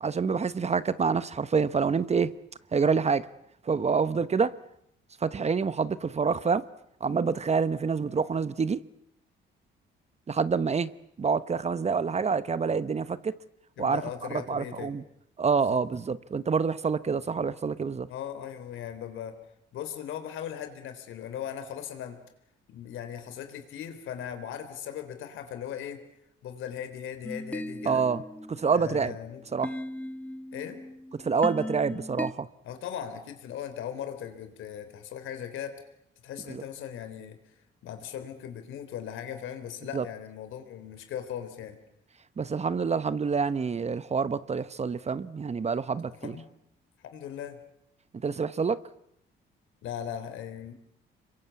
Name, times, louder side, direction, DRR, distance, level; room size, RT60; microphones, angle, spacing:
voice 1, 0.0-2.3 2.7-3.3 3.7-4.5 5.2-6.7 7.0-8.8 10.3-10.9 11.2-13.3 13.8-14.0 14.3-15.0 15.4-18.1 27.9-28.2 28.5-29.1 29.5-29.7 31.2-32.5 36.5-36.6 39.9-40.0 42.4-46.3 48.2-48.8, right 5 dB, 35° right, 1.0 m, -27 dB
voice 2, 13.8-15.0 15.7-15.8 18.1-19.4 19.7-22.2 22.7-26.0 26.4-28.1 28.7-29.4 30.5-30.8 32.6-35.8 36.2-37.4 37.8-41.8 46.1-46.5 47.1-47.6 49.8-50.7, left 9 dB, 85° left, 3.7 m, -38 dB
sound 1, 27.2-32.3, left 1 dB, 5° left, 0.9 m, -38 dB
26.5 x 23.0 x 8.4 m
cardioid pair, 90°, 20 cm